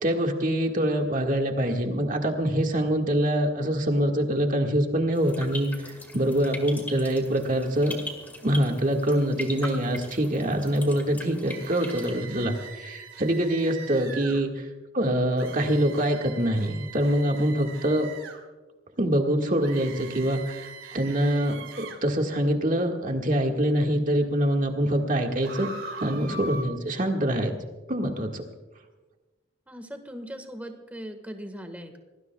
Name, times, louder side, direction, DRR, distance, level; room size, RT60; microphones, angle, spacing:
voice 1, 0.0-8.0 8.4-14.7 14.9-18.1 19.0-25.7 26.0-27.5 27.9-28.4, right 1 dB, 40° right, 2 dB, 1.8 m, -25 dB
sound 1, 5.1-12.1, left 1 dB, 10° left, 1.9 m, -41 dB
sound 2, 11.5-14.4 15.4-18.4 19.6-22.0 25.4-26.6, right 4 dB, 85° right, 2.5 m, -42 dB
voice 2, 29.7-32.0, equal, 10° right, 6 dB, 1.6 m, -39 dB
25.5 x 19.0 x 2.3 m, 1.2 s
head